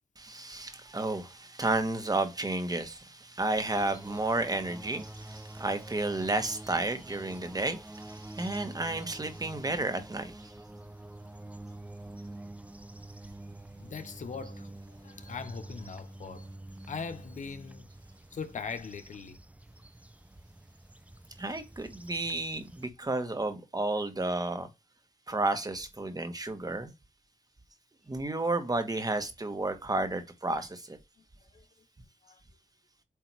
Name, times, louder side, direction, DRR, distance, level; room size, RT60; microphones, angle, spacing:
voice 1, 0.2-10.5 21.4-24.7 25.3-26.9 28.1-31.0, right 2 dB, 30° right, 1.3 m, -32 dB
sound 1, 3.5-22.9, right 1 dB, 10° right, 0.8 m, -47 dB
voice 2, 13.8-16.5 16.9-17.9 18.3-19.4 31.2-31.3 31.5-31.6 32.2-32.4, left 5 dB, 75° left, 0.9 m, -40 dB
8.3 x 2.8 x 4.7 m
cardioid pair, 65°, 13 cm